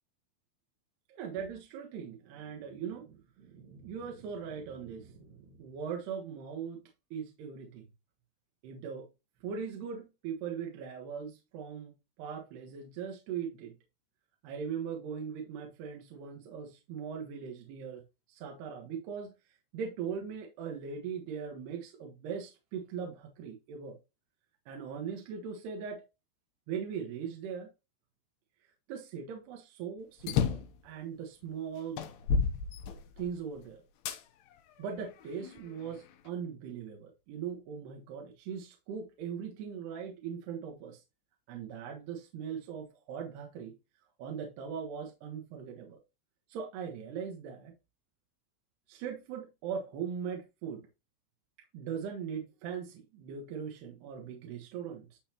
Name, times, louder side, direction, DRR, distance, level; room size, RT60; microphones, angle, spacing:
voice 1, 1.1-6.8 7.1-7.9 8.6-9.1 9.4-11.9 12.2-13.7 14.4-18.0 18.3-19.3 19.7-24.0 24.7-26.0 26.7-27.7 28.9-32.1 33.2-33.8 34.8-41.0 41.5-43.7 44.2-46.0 46.5-47.7 48.9-50.8 51.7-55.2, right 7 dB, 75° right, 3.5 m, -40 dB
sound 1, 30.2-30.8 31.4-31.5 32.0-33.4 34.1-34.2 34.9-36.0, left 6 dB, 80° left, 2.9 m, -31 dB
12.5 x 4.2 x 2.9 m
omnidirectional pair, 4.8 m